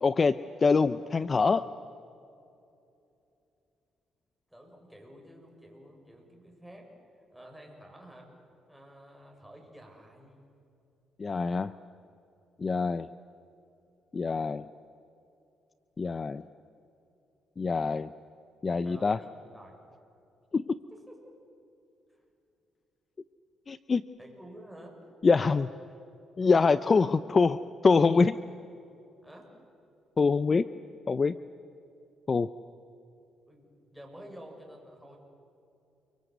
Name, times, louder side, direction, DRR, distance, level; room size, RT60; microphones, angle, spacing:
voice 1, 0.0-1.7 11.2-11.7 12.6-13.1 14.1-14.7 16.0-16.4 17.6-18.1 18.6-19.2 20.5-20.8 23.7-24.0 25.2-25.7 26.4-28.4 30.2-30.7 31.1-31.3 32.3-32.5, left 4 dB, 35° left, 14 dB, 0.6 m, -25 dB
voice 2, 4.5-6.9 7.3-8.3 8.7-10.5 18.8-19.8 20.9-21.3 24.2-25.0 29.2-29.5 33.5-35.2, equal, 5° right, 0 dB, 6.9 m, -50 dB
29.5 x 23.5 x 8.0 m, 2.7 s
cardioid pair, 90°, 0 cm